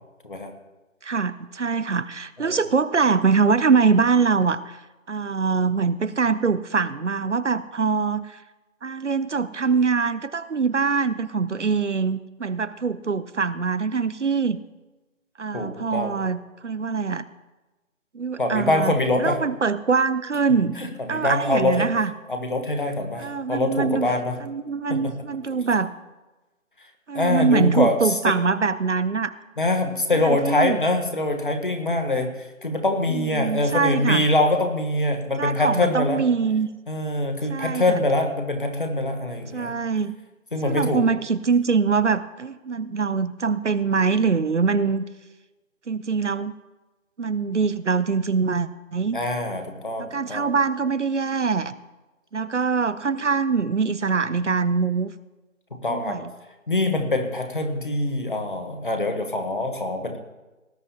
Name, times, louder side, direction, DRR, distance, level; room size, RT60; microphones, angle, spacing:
voice 1, 1.0-4.8 5.1-8.4 8.8-14.6 15.4-17.2 18.1-20.8 21.1-22.1 23.2-24.1 24.4-25.9 27.1-29.3 30.2-30.8 33.1-34.3 35.4-36.7 37.5-38.0 39.5-40.2 40.6-45.0 45.9-46.5 47.2-49.2 50.0-51.7 52.3-55.1 55.9-56.3, right 5 dB, 60° right, 16 dB, 0.6 m, -23 dB
voice 2, 15.5-16.2 18.4-19.4 20.8-21.9 22.3-24.4 24.9-25.1 25.5-25.6 27.1-28.4 29.6-36.2 36.9-39.8 40.5-41.1 49.1-50.5 55.7-56.2 56.7-60.2, left 1 dB, 40° left, 5 dB, 1.3 m, -24 dB
19.0 x 10.5 x 2.8 m, 1.1 s
figure-of-eight pair, 175°, 41 cm